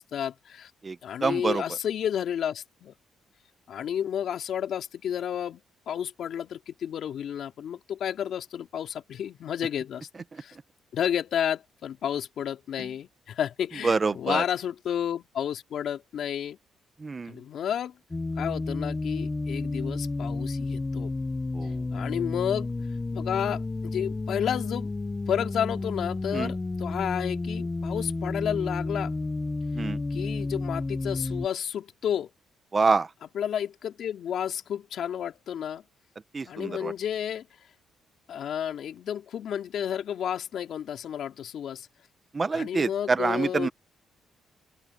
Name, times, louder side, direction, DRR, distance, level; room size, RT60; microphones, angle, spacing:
voice 1, 0.0-0.7 1.0-2.9 3.7-5.6 5.9-10.1 10.4-10.5 10.9-16.6 17.3-18.0 18.4-21.1 21.9-22.7 23.1-24.9 25.3-29.1 30.1-32.3 33.3-35.8 36.5-37.5 38.3-41.9 42.5-43.7, left 9 dB, 65° left, 2.9 m, -31 dB
voice 2, 0.8-1.6 10.3-10.4 13.8-14.4 17.0-17.4 21.5-21.8 26.3-26.5 29.7-30.0 32.7-33.1 36.3-36.9 42.3-43.7, right 4 dB, 30° right, 1.2 m, -26 dB
sound 1, 18.1-31.5, left 3 dB, 20° left, 0.9 m, -31 dB
open air
cardioid pair, 90°, 0 cm